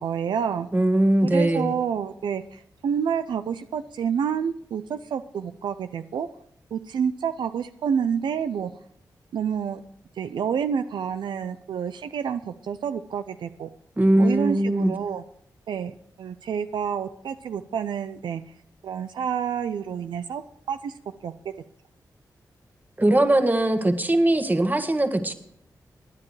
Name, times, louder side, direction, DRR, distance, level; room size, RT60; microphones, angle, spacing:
voice 1, 0.0-0.7 1.2-6.3 6.7-8.7 9.3-9.8 10.2-13.7 14.2-15.2 15.7-18.5 18.8-20.4 20.7-20.9 21.2-21.3, right 7 dB, 80° right, 10 dB, 0.5 m, -28 dB
voice 2, 0.7-1.7 14.0-14.9 23.0-25.3, right 1 dB, 25° right, 8 dB, 1.5 m, -20 dB
19.0 x 9.8 x 3.2 m, 0.69 s
cardioid pair, 50°, 8 cm